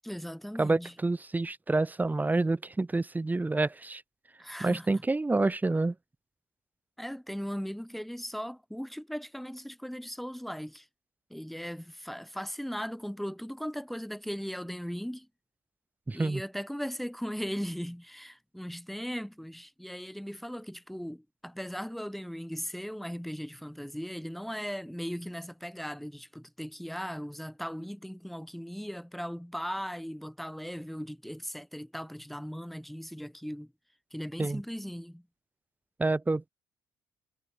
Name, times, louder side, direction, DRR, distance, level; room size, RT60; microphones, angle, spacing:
voice 1, 0.0-0.9 4.4-5.0 7.0-10.9 11.3-15.3 16.1-33.7 34.1-35.2, equal, ahead, 7.5 m, -38 dB
voice 2, 0.6-4.0 4.6-5.9 16.1-16.4 34.4-34.6 36.0-36.5, right 2 dB, 20° right, 2.6 m, -28 dB
hypercardioid pair, 50°, 9 cm